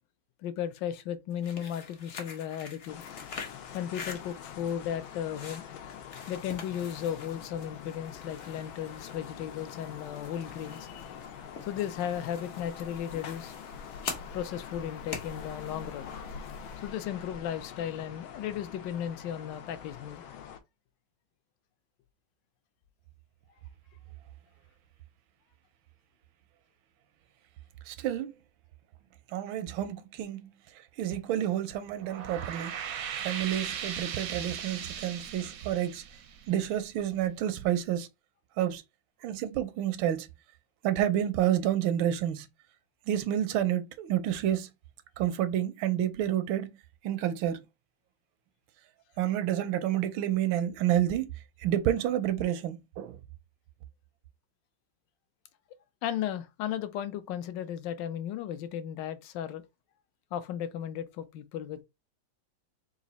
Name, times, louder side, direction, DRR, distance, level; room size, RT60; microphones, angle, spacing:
voice 1, 0.4-3.0 3.7-5.6 6.3-11.2 11.6-13.5 14.3-16.1 16.8-20.2 56.0-59.6 60.3-61.8, left 10 dB, 75° left, 1.2 m, -35 dB
sound 1, 1.3-16.9, left 5 dB, 55° left, 0.8 m, -46 dB
sound 2, 2.9-20.6, left 7 dB, 90° left, 1.5 m, -45 dB
voice 2, 27.9-28.3 29.3-30.5 31.0-32.7 33.2-36.0 36.5-38.1 38.6-38.8 39.2-40.3 40.8-42.5 43.1-44.7 45.2-46.8 47.0-47.6 49.2-51.3 51.6-53.2, right 11 dB, 85° right, 1.4 m, -29 dB
sound 3, 31.9-37.1, right 8 dB, 70° right, 0.8 m, -38 dB
4.0 x 2.5 x 4.0 m
omnidirectional pair, 2.1 m